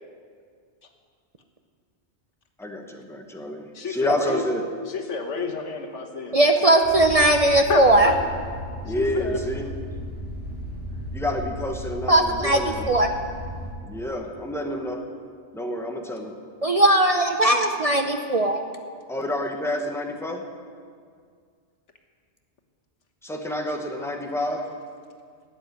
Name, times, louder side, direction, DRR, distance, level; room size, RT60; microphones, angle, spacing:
voice 1, 2.6-4.7 8.8-9.7 11.1-12.9 13.8-15.0 15.5-16.4 19.1-20.4 23.2-24.7, left 1 dB, ahead, 2 dB, 1.1 m, -29 dB
voice 2, 3.7-4.4 4.9-6.5 7.7-8.1 8.9-9.4, left 5 dB, 85° left, 4 dB, 1.6 m, -30 dB
voice 3, 6.3-8.1 12.1-13.1 16.6-18.6, right 1 dB, 40° right, 5 dB, 0.7 m, -19 dB
sound 1, 6.8-13.7, left 1 dB, 85° right, 3.1 m, -35 dB
12.5 x 8.1 x 9.6 m, 2.1 s
omnidirectional pair, 1.2 m